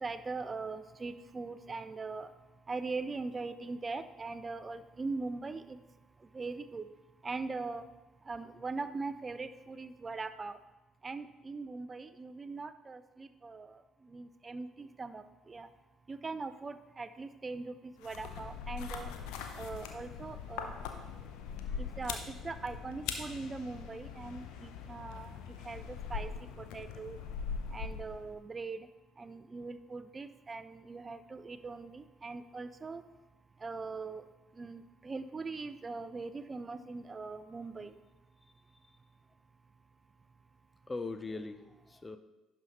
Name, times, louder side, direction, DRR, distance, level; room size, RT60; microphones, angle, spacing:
voice 1, 0.0-2.3 2.7-5.8 6.3-6.8 7.2-7.8 8.3-10.6 11.0-13.7 14.1-15.7 16.1-19.1 19.6-20.7 22.0-22.2 22.4-25.3 25.6-26.3 26.7-27.2 27.7-28.8 29.2-33.0 33.6-34.2 34.6-37.9, right 3 dB, 30° right, 12 dB, 0.5 m, -41 dB
sound 1, 18.0-28.4, left 6 dB, 70° left, 0.7 m, -41 dB
voice 2, 21.6-22.2 29.3-29.5 38.8-39.0 40.9-42.2, left 3 dB, 25° left, 10 dB, 0.6 m, -43 dB
11.0 x 5.4 x 3.1 m, 1.1 s
hypercardioid pair, 50°, 0 cm